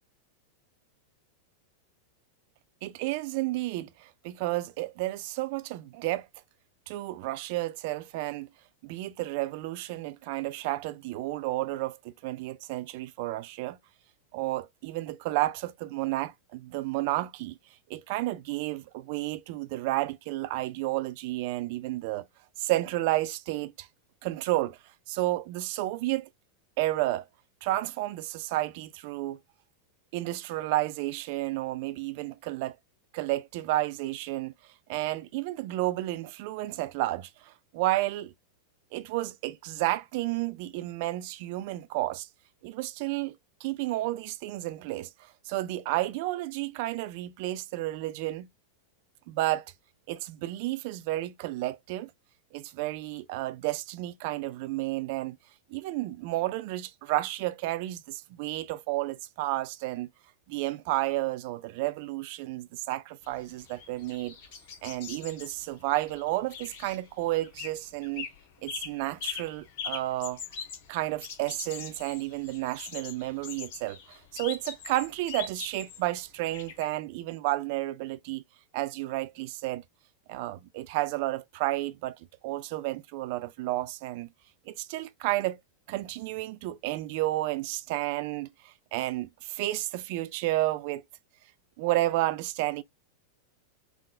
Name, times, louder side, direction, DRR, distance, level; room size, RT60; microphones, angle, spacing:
voice 1, 2.8-6.3 6.9-8.5 8.8-13.8 14.3-17.6 17.9-22.3 22.6-23.9 24.2-24.8 25.1-26.3 26.8-27.3 27.6-29.4 30.1-32.8 33.1-34.5 34.9-38.3 38.9-42.3 42.6-43.3 43.6-48.5 49.3-49.7 50.1-52.1 52.5-55.4 55.7-60.1 60.5-64.4 64.8-68.3 68.6-70.4 70.9-78.4 78.7-79.8 80.3-82.2 82.4-84.3 84.7-85.6 85.9-91.0 91.8-92.8, right 17 dB, 50° right, 0.3 m, -31 dB
sound 1, 63.2-67.7 68.0-68.4 68.7-76.0 76.5-76.8, left 6 dB, 50° left, 1.0 m, -41 dB
3.6 x 2.3 x 2.4 m
figure-of-eight pair, 90°, 0 cm